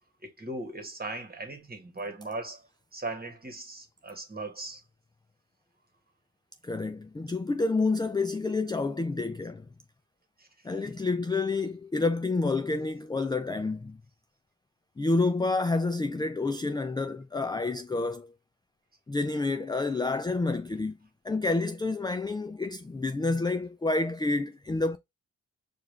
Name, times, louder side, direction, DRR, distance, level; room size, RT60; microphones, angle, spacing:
voice 1, 0.2-2.7 2.9-4.8 10.4-10.7, right 2 dB, 25° right, 1.5 m, -38 dB
voice 2, 6.6-9.7 10.6-14.0 15.0-18.3 19.1-21.0 21.2-25.0, left 3 dB, 15° left, 0.4 m, -29 dB
4.7 x 2.5 x 3.3 m
cardioid pair, 50°, 34 cm